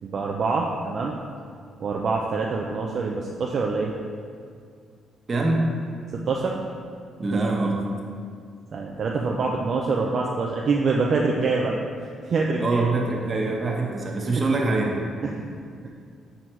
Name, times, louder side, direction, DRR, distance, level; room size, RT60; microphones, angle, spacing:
voice 1, 0.0-1.2 1.8-3.9 6.1-6.6 8.7-11.7 12.2-12.9 13.9-14.1 15.2-15.5, right 4 dB, 55° right, -1 dB, 0.5 m, -25 dB
voice 2, 5.3-5.7 7.2-7.8 12.6-15.0, right 3 dB, 35° right, 0 dB, 1.0 m, -24 dB
6.2 x 3.9 x 4.4 m, 2.1 s
cardioid pair, 90°, 0 cm